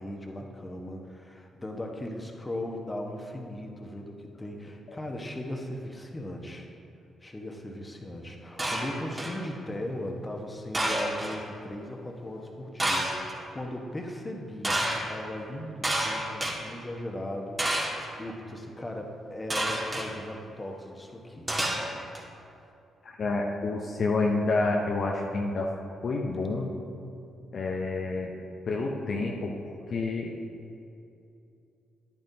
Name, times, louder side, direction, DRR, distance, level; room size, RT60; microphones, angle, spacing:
voice 1, 0.0-6.7 7.2-21.5, left 1 dB, 20° left, 2 dB, 1.2 m, -38 dB
sound 1, 8.6-9.4 10.7-11.4 12.8-13.3 14.6-15.0 15.8-16.6 17.6-18.1 19.5-20.1 21.5-22.2, right 1 dB, 20° right, 1.8 m, -29 dB
voice 2, 23.0-25.7 26.0-26.7 27.5-28.3 28.7-30.3, left 3 dB, 55° left, -1 dB, 0.8 m, -29 dB
11.0 x 8.9 x 2.8 m, 2.6 s
hypercardioid pair, 40°, 0 cm